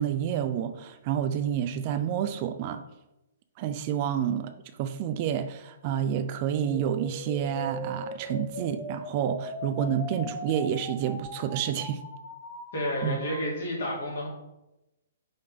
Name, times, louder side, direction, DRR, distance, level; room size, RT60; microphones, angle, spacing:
voice 1, 0.0-2.8 3.6-4.5 4.8-12.0 13.0-13.2, right 9 dB, 35° right, 9 dB, 0.4 m, -29 dB
sound 1, 6.4-13.4, left 1 dB, 30° left, 1.6 m, -39 dB
voice 2, 12.7-14.3, equal, 55° left, -3 dB, 2.2 m, -30 dB
5.2 x 3.9 x 5.0 m, 0.93 s
figure-of-eight pair, 120°, 0 cm